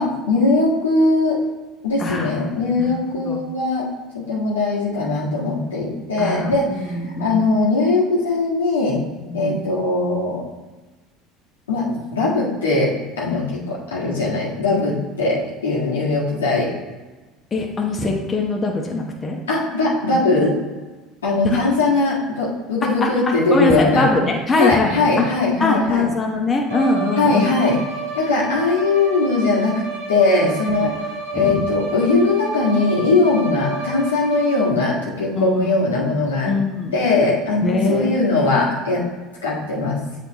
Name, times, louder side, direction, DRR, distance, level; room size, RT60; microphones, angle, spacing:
voice 1, 0.0-1.4 1.8-3.9 4.1-6.9 7.2-9.0 9.3-10.4 11.7-16.7 19.5-20.5 21.2-24.1 24.6-26.1 27.2-27.8 28.2-29.8 30.1-30.9 31.3-36.5 36.9-39.0 39.4-40.0, left 3 dB, 90° left, -6 dB, 1.8 m, -20 dB
voice 2, 2.0-2.3 2.8-3.0 3.2-3.4 6.2-7.4 9.3-9.6 17.5-19.4 21.4-21.6 22.8-23.1 23.5-25.3 25.6-27.5 30.8-31.0 31.3-31.6 35.3-35.7 36.5-36.9 37.6-38.7, left 3 dB, 25° left, 0 dB, 1.1 m, -22 dB
Bowed string instrument, 26.7-34.9, right 4 dB, 85° right, 1.5 m, -30 dB
7.8 x 4.4 x 3.0 m, 1.2 s
hypercardioid pair, 75°, 0 cm